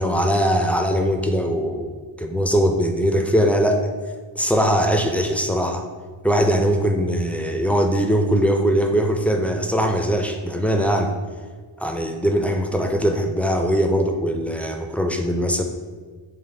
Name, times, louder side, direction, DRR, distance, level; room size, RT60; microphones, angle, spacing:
voice 1, 0.0-1.9 2.2-3.8 4.4-5.8 6.2-11.1 11.8-15.6, equal, 5° left, 4 dB, 0.4 m, -21 dB
4.0 x 3.3 x 3.3 m, 1.5 s
cardioid pair, 55°, 46 cm